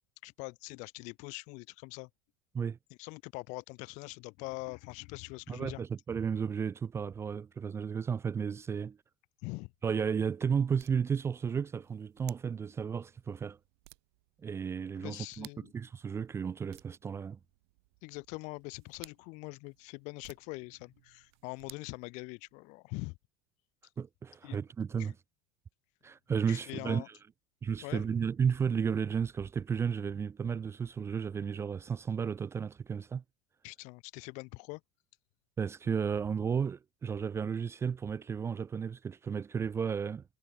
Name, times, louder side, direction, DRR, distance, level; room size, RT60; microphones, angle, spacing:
voice 1, 0.2-2.1 3.0-5.8 9.4-9.7 14.9-15.7 18.0-23.2 24.4-24.6 25.0-25.1 26.5-27.1 27.8-28.0 33.6-34.8, left 28 dB, 60° left, 1.2 m, -43 dB
voice 2, 5.5-9.0 9.8-13.6 14.4-15.5 15.7-17.4 24.0-25.1 26.0-27.0 27.6-33.2 35.6-40.2, right 6 dB, 20° right, 0.4 m, -33 dB
sound 1, 9.5-22.8, right 25 dB, 75° right, 0.9 m, -59 dB
supercardioid pair, 125°, 14 cm